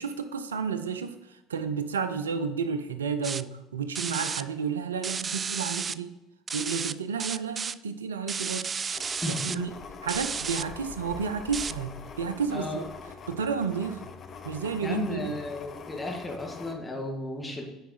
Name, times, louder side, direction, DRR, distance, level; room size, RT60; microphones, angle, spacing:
voice 1, 0.0-6.1 6.5-8.7 9.3-9.7 10.0-12.8 13.3-14.1 14.4-15.4, right 6 dB, 90° right, 10 dB, 0.6 m, -31 dB
sound 1, 3.2-3.4 4.0-4.4 5.0-5.9 6.5-6.9 7.2-7.7 8.3-9.6 10.1-10.6 11.5-11.7, right 6 dB, 35° right, 0.3 m, -32 dB
sound 2, 8.9-16.7, left 5 dB, 45° left, 0.9 m, -43 dB
voice 2, 9.2-9.6 12.5-12.8 14.8-17.6, left 2 dB, 15° left, 0 dB, 2.2 m, -34 dB
9.2 x 4.8 x 4.9 m, 1.0 s
hypercardioid pair, 65°, 0 cm